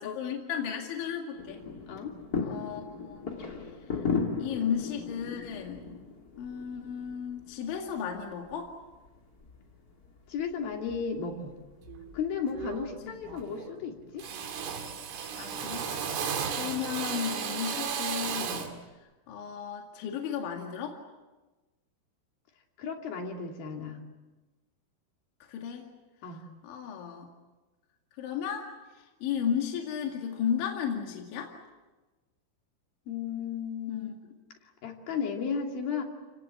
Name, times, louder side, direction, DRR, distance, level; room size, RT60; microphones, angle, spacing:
voice 1, 0.0-1.6 2.4-3.4 4.4-5.9 6.4-8.7 13.1-13.2 15.4-15.9 16.6-18.7 19.3-21.0 25.5-25.9 26.6-27.3 28.2-28.7 29.2-31.5 33.9-34.1, left 8 dB, 70° left, 2 dB, 4.5 m, -34 dB
sound 1, 1.4-13.4, left 5 dB, 30° left, 1.7 m, -38 dB
voice 2, 10.3-11.5 12.1-14.2 22.8-24.0 26.2-26.5 33.1-34.1 34.8-36.0, left 6 dB, 50° left, 2 dB, 4.1 m, -34 dB
Drill, 11.9-12.1 12.5-13.0 13.3-13.8 14.2-18.8, right 7 dB, 70° right, 4.8 m, -34 dB
29.5 x 19.0 x 8.7 m, 1.2 s
omnidirectional pair, 5.8 m